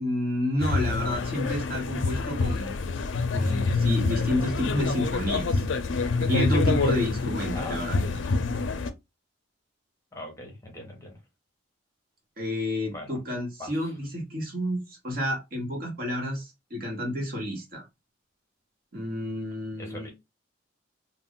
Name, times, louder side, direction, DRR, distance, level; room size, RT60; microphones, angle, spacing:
voice 1, 0.0-2.7 3.3-5.7 6.2-8.0 12.4-17.8 18.9-20.1, left 1 dB, 50° right, 1.0 m, -30 dB
sound 1, 0.6-8.9, left 3 dB, 70° left, 0.4 m, -27 dB
voice 2, 7.5-8.0 10.1-11.2 12.9-13.2 13.6-13.9 19.8-20.1, left 1 dB, 15° left, 0.8 m, -41 dB
2.3 x 2.0 x 3.6 m
head